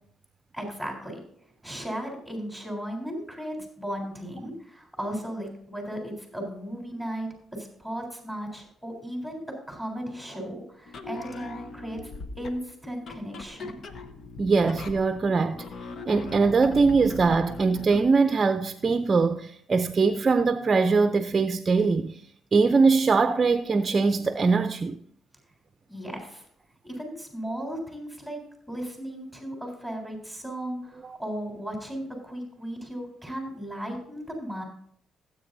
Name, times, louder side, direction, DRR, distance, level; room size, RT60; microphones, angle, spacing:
voice 1, 0.5-1.2 1.6-9.4 9.7-13.8 25.9-26.4 26.8-28.4 28.7-34.6, equal, 5° left, 3.7 m, -36 dB
sound 1, 10.9-18.2, left 3 dB, 55° left, 0.9 m, -40 dB
voice 2, 14.4-15.7 16.1-22.2 22.5-25.0, right 4 dB, 35° right, 0.5 m, -22 dB
16.0 x 8.2 x 2.7 m
cardioid pair, 90°, 0 cm